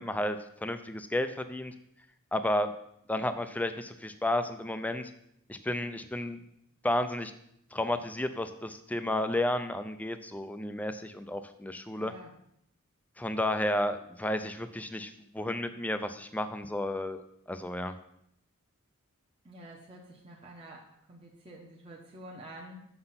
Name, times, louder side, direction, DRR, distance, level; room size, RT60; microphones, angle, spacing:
voice 1, 0.0-1.7 2.3-2.7 3.1-5.1 5.5-6.4 6.8-7.3 7.7-12.1 13.2-17.2 17.5-18.0, left 1 dB, 5° left, 9 dB, 0.4 m, -32 dB
voice 2, 12.0-12.3 19.4-22.9, right 1 dB, 25° right, -3 dB, 1.0 m, -48 dB
6.7 x 5.8 x 5.7 m, 0.74 s
head